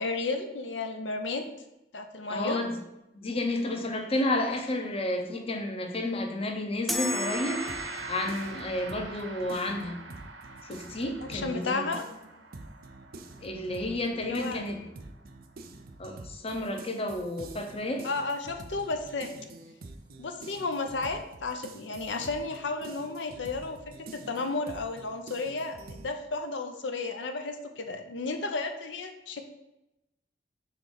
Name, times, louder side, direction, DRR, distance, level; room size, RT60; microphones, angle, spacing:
voice 1, 0.0-1.4 1.9-2.6 10.9-12.1 14.3-14.6 18.0-19.3 20.2-23.8 24.3-29.4, left 3 dB, 80° left, 6 dB, 0.6 m, -33 dB
voice 2, 2.3-2.7 3.1-9.9 10.7-11.9 13.4-14.8 16.0-18.0, left 1 dB, 30° left, 4 dB, 0.7 m, -31 dB
sound 1, 6.9-8.4, left 2 dB, ahead, 0.4 m, -34 dB
Gong, 6.9-16.1, right 4 dB, 90° right, 0.9 m, -43 dB
sound 2, 7.7-11.6 11.9-26.1, right 2 dB, 55° right, 0.6 m, -47 dB
6.6 x 3.2 x 5.5 m, 0.91 s
head